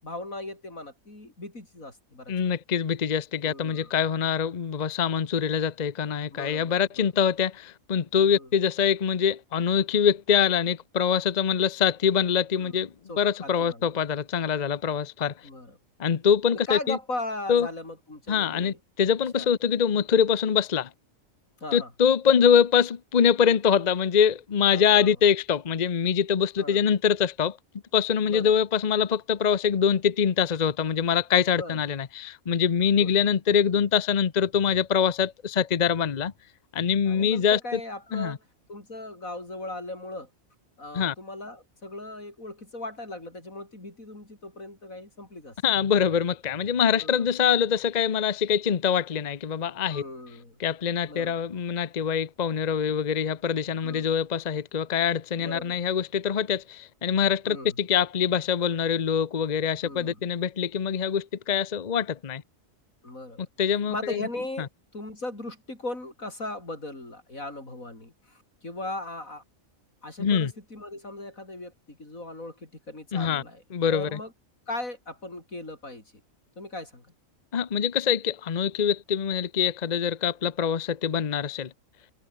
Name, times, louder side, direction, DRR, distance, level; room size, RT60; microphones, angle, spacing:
voice 1, 0.0-2.5 3.4-3.9 6.3-7.1 8.2-8.5 12.5-12.8 13.1-13.9 15.4-15.8 16.5-18.8 19.3-19.5 21.6-21.9 24.7-25.1 26.6-26.8 28.3-28.5 31.6-31.8 32.9-33.1 37.1-38.4 38.7-40.3 40.8-45.6 47.0-47.3 49.9-50.6 51.1-51.4 53.8-54.1 55.4-55.8 57.4-57.8 59.8-60.3 63.0-63.5 63.9-69.4 70.0-73.6 73.9-74.3 74.7-76.0 76.6-77.1, left 2 dB, 85° left, 7.2 m, -38 dB
voice 2, 2.3-15.3 16.0-17.0 17.5-17.7 18.3-20.9 21.7-27.6 27.9-36.3 36.7-37.8 38.1-38.4 40.9-41.1 45.6-50.0 50.6-62.4 63.6-64.2 70.2-70.5 73.1-73.4 73.7-74.2 77.5-81.7, left 7 dB, 40° left, 0.8 m, -24 dB
omnidirectional pair, 1.4 m